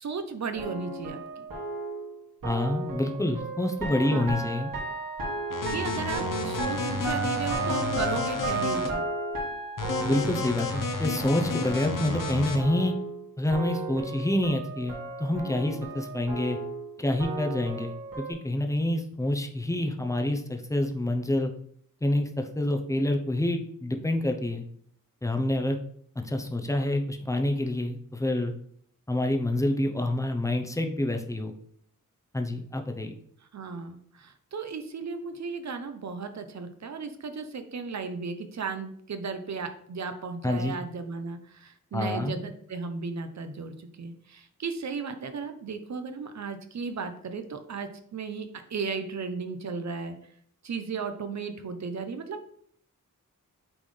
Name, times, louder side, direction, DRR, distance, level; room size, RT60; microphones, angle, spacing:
voice 1, 0.0-1.5 4.1-4.3 5.7-9.0 33.5-50.2 50.6-52.5, right 5 dB, 55° right, 8 dB, 0.8 m, -35 dB
sound 1, 0.5-13.2 13.5-18.3, right 3 dB, 85° right, 2.1 m, -34 dB
voice 2, 2.4-4.7 10.0-12.9 13.4-16.6 17.0-21.5 22.0-24.6 25.2-25.8 26.2-28.5 29.1-31.5 32.3-33.2 40.4-40.7 41.9-42.4, left 1 dB, 10° left, 4 dB, 0.7 m, -27 dB
sound 2, 5.5-8.9 9.8-12.6, left 4 dB, 70° left, 1.0 m, -31 dB
8.8 x 4.1 x 3.3 m, 0.63 s
wide cardioid pair, 145°, 33 cm